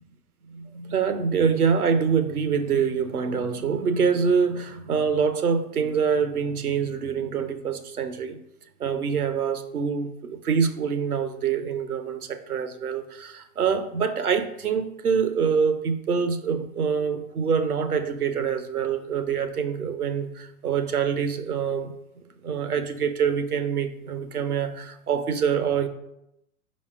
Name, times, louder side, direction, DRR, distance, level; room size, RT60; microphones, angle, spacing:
voice 1, 0.5-8.4 8.8-25.9, right 6 dB, 90° right, 10 dB, 0.8 m, -25 dB
5.4 x 4.2 x 4.9 m, 0.82 s
hypercardioid pair, 100°, 43 cm